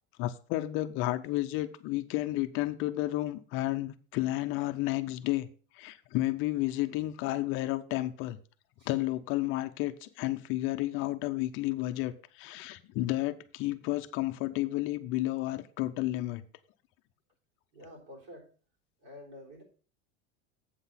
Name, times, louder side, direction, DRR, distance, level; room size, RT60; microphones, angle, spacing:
voice 1, 0.2-5.5 5.8-8.4 8.9-16.4, left 16 dB, 35° left, 0.4 m, -32 dB
voice 2, 17.7-18.5 19.0-19.6, left 1 dB, 70° right, 3.6 m, -49 dB
8.1 x 5.9 x 5.6 m
supercardioid pair, 165°, 38 cm